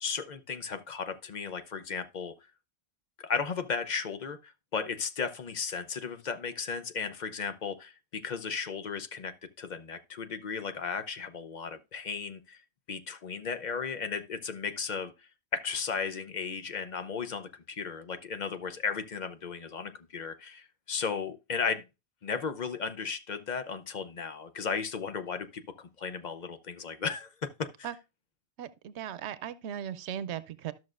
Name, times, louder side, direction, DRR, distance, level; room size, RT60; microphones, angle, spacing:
voice 1, 0.0-2.3 3.2-12.6 12.9-15.1 15.5-21.8 22.2-27.9, left 5 dB, 50° left, 0.7 m, -35 dB
voice 2, 28.6-30.7, right 9 dB, 90° right, 0.9 m, -37 dB
12.5 x 6.1 x 2.4 m
omnidirectional pair, 1.1 m